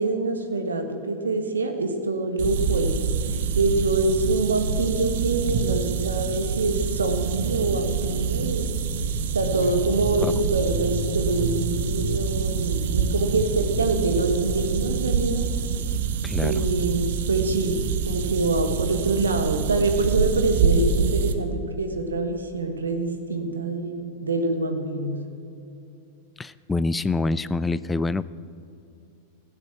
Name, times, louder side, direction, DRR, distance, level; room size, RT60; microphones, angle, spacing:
voice 1, 0.0-2.9 3.3-8.7 9.3-15.5 16.4-25.2, right 3 dB, 75° right, 6 dB, 1.5 m, -25 dB
sound 1, 2.4-21.3, right 6 dB, 55° right, 0.9 m, -26 dB
sound 2, 9.3-15.3, right 1 dB, 75° left, 2.8 m, -35 dB
voice 2, 16.2-16.7 26.4-28.3, left 3 dB, 10° left, 16 dB, 0.4 m, -26 dB
16.0 x 9.1 x 7.3 m, 2.7 s
figure-of-eight pair, 90°, 0 cm